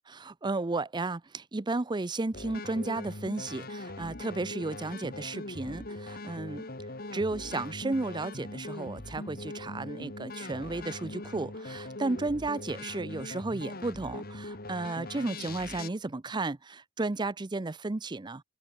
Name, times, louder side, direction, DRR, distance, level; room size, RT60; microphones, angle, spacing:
voice 1, 0.1-6.6 7.1-18.4, right 2 dB, 25° right, 0.5 m, -33 dB
sound 1, 2.3-15.9, left 2 dB, 50° left, 2.8 m, -41 dB
head